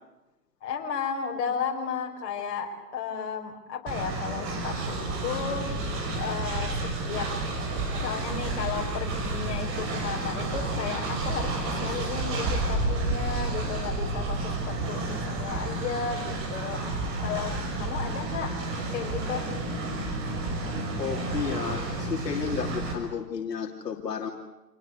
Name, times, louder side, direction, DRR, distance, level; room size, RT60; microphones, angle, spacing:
voice 1, 0.6-5.7 6.1-6.7 7.0-7.3 8.0-18.5 18.9-19.5, left 6 dB, 45° left, 2 dB, 5.7 m, -34 dB
Train, 3.9-22.9, right 2 dB, 25° right, 5.9 m, -30 dB
voice 2, 21.0-24.3, left 6 dB, 75° left, 3 dB, 3.2 m, -32 dB
28.5 x 20.0 x 8.2 m, 1.0 s
hypercardioid pair, 140°, 48 cm